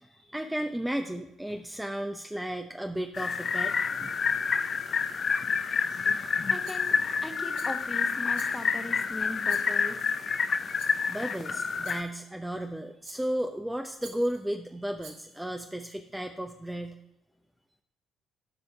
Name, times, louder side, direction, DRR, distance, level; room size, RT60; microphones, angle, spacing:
voice 1, 0.0-4.2 5.9-6.4 11.1-17.0, right 1 dB, 5° right, 4 dB, 0.7 m, -34 dB
sound 1, 3.1-12.0, left 5 dB, 45° left, 0.6 m, -28 dB
voice 2, 5.8-10.2, left 2 dB, 15° left, 6 dB, 1.2 m, -40 dB
Rattle, 6.6-7.1 7.5-7.9 8.3-8.9 9.5-10.0 10.8-11.1 11.8-12.2 13.0-13.5 14.0-14.4 15.0-15.5, right 4 dB, 70° right, 1.7 m, -50 dB
14.0 x 5.4 x 3.4 m, 0.84 s
hypercardioid pair, 50°, 0 cm